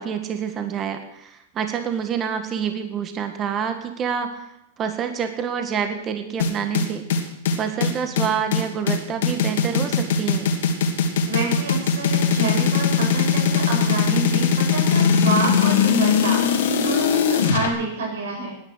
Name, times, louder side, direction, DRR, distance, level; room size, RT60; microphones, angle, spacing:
voice 1, 0.0-7.0 7.6-10.5, right 7 dB, 25° right, 6 dB, 1.7 m, -27 dB
sound 1, 6.4-17.7, left 6 dB, 75° left, 2.8 m, -20 dB
voice 2, 11.3-18.5, right 3 dB, 80° right, 0 dB, 7.3 m, -28 dB
18.5 x 10.5 x 6.6 m, 0.84 s
supercardioid pair, 140°, 0 cm